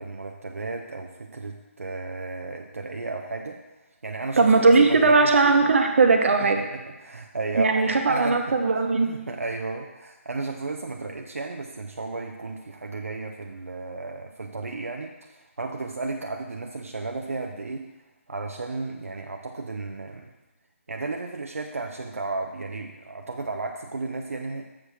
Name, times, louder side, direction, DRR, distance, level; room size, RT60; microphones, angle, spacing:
voice 1, 0.0-4.5 4.8-5.5 6.5-8.6 9.1-17.9 18.3-20.3 20.9-24.7, right 3 dB, 85° right, 2 dB, 0.7 m, -34 dB
voice 2, 4.4-6.6 7.5-9.1, right 3 dB, 65° right, 4 dB, 1.2 m, -19 dB
7.3 x 5.0 x 6.2 m, 1.1 s
figure-of-eight pair, 150°, 7 cm